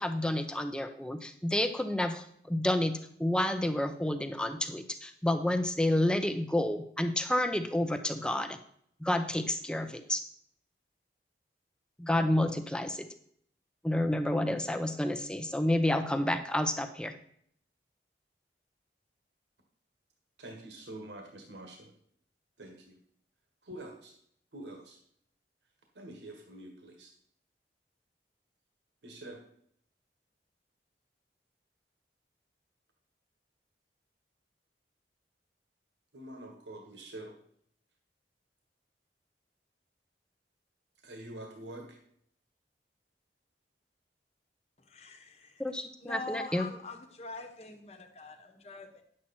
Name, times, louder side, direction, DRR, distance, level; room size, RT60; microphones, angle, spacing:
voice 1, 0.0-8.6 9.0-10.2 12.0-13.1 13.8-17.1 45.6-46.7, left 1 dB, 5° left, 8 dB, 0.6 m, -30 dB
voice 2, 20.4-21.9 22.6-23.0 23.6-24.1 24.5-25.0 25.9-27.1 29.0-29.4 36.1-37.3 41.0-42.0, right 1 dB, 85° right, 2 dB, 1.6 m, -46 dB
voice 3, 44.8-45.6 46.0-49.0, left 3 dB, 35° left, 6 dB, 1.2 m, -44 dB
9.9 x 7.5 x 4.3 m, 0.66 s
head